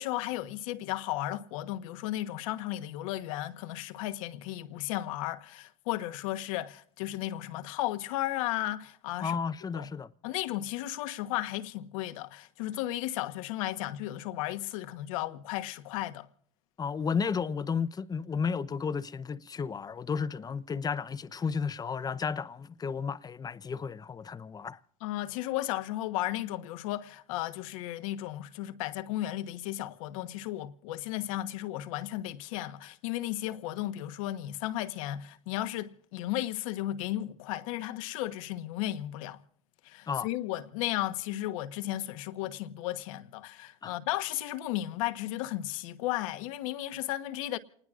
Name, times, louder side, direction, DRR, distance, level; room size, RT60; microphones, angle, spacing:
voice 1, 0.0-9.4 9.7-9.9 10.2-16.3 25.0-39.4 39.8-47.6, left 14 dB, 80° left, 1.2 m, -34 dB
voice 2, 9.2-10.1 16.8-24.8 40.1-40.3 43.8-44.0, left 6 dB, 25° left, 0.8 m, -33 dB
28.5 x 20.0 x 2.5 m
supercardioid pair, 105°, 17 cm